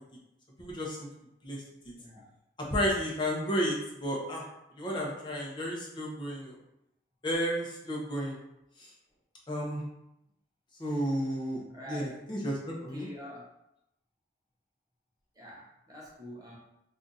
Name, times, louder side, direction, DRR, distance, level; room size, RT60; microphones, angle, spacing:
voice 1, 0.6-1.1 1.4-1.6 2.7-4.4 4.8-6.5 7.2-8.4 8.8-8.9 9.5-9.8 10.8-11.6 11.9-13.1, equal, 25° left, -2 dB, 0.6 m, -32 dB
voice 2, 2.0-2.3 10.8-11.0 11.7-12.2 12.7-13.5 15.3-16.6, left 1 dB, 20° right, -4 dB, 0.6 m, -46 dB
2.6 x 2.4 x 3.9 m, 0.85 s
head